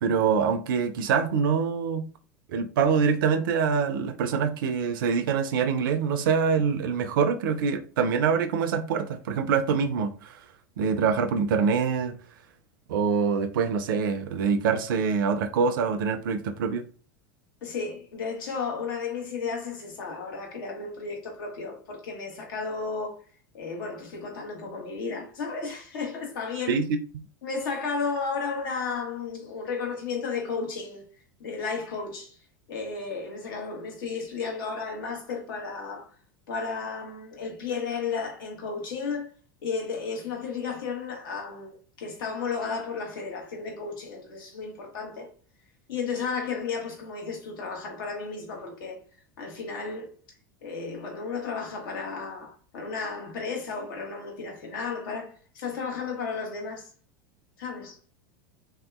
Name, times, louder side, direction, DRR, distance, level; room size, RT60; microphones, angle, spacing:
voice 1, 0.0-2.1 2.5-10.4 10.8-12.2 12.9-16.8 26.7-26.9, right 6 dB, 80° right, 0.4 m, -25 dB
voice 2, 17.6-23.2 23.5-26.8 27.4-31.0 31.4-32.4 32.7-36.1 36.5-39.3 39.6-45.3 45.9-49.0 49.4-50.1 50.6-56.9 57.6-58.0, left 5 dB, 75° left, 1.1 m, -33 dB
3.4 x 2.7 x 2.3 m
hypercardioid pair, 100°, 11 cm